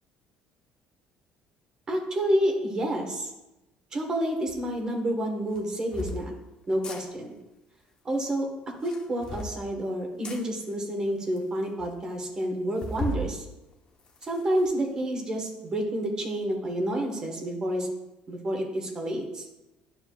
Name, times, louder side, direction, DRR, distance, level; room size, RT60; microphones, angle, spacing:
voice 1, 1.9-3.3 3.9-6.3 6.7-7.3 8.0-13.4 14.2-17.9 18.3-19.5, right 1 dB, 25° right, 1 dB, 1.2 m, -29 dB
sound 1, 4.5-4.6 5.5-6.2 6.7-7.0 8.7-9.5 10.2-10.4 11.1-11.2 11.4-11.5 11.8-11.9 12.8-13.3 13.7-14.7, left 1 dB, 30° left, 0.9 m, -35 dB
10.5 x 6.9 x 2.3 m, 0.99 s
cardioid pair, 175°, 3 cm